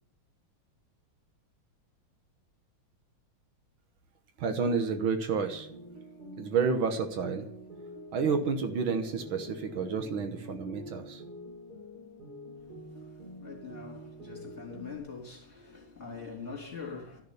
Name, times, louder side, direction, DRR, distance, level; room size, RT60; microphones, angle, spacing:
voice 1, 4.4-5.7 6.4-7.5 8.1-11.2, right 5 dB, 75° right, 1.9 m, -30 dB
sound 1, 5.4-15.0, right 1 dB, 45° right, 5.5 m, -46 dB
voice 2, 12.6-17.2, left 5 dB, 35° left, 3.6 m, -44 dB
13.0 x 6.7 x 9.8 m
omnidirectional pair, 2.3 m